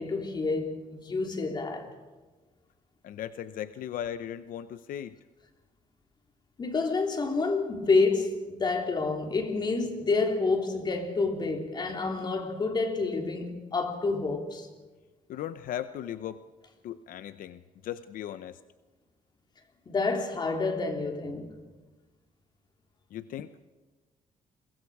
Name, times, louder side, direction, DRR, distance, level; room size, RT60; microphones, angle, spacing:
voice 1, 0.0-1.9 6.6-14.7 19.9-21.5, left 3 dB, 30° left, 3.1 m, -28 dB
voice 2, 3.0-5.2 15.3-16.4 16.8-18.6 23.1-23.7, left 10 dB, 85° left, 0.7 m, -37 dB
29.5 x 23.0 x 4.8 m
cardioid pair, 150°, 14 cm